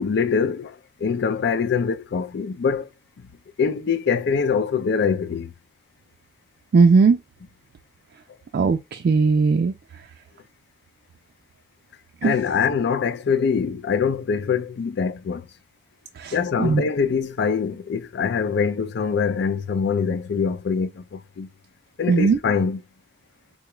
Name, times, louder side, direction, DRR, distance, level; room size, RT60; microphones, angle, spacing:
voice 1, 0.0-2.9 3.6-5.5 12.2-15.5 16.3-21.5 22.0-22.8, left 6 dB, 65° left, 0.4 m, -24 dB
voice 2, 6.7-7.2 8.5-9.7 12.2-12.4 16.2-16.8 22.1-22.4, right 4 dB, 55° right, 0.3 m, -18 dB
3.9 x 2.2 x 2.9 m
head